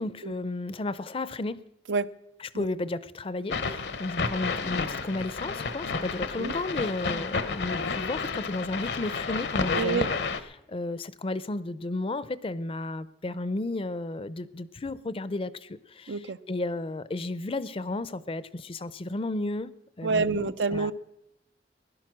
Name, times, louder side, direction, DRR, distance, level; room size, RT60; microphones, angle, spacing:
voice 1, 0.0-1.6 2.4-10.1 10.5-19.7 20.0-20.9, left 2 dB, 30° left, 17 dB, 0.5 m, -33 dB
sound 1, 3.5-10.4, left 4 dB, 70° left, 0.9 m, -31 dB
voice 2, 9.7-10.1 16.1-16.4 20.0-20.9, right 4 dB, 85° right, 13 dB, 0.6 m, -27 dB
16.5 x 11.0 x 6.1 m, 0.83 s
head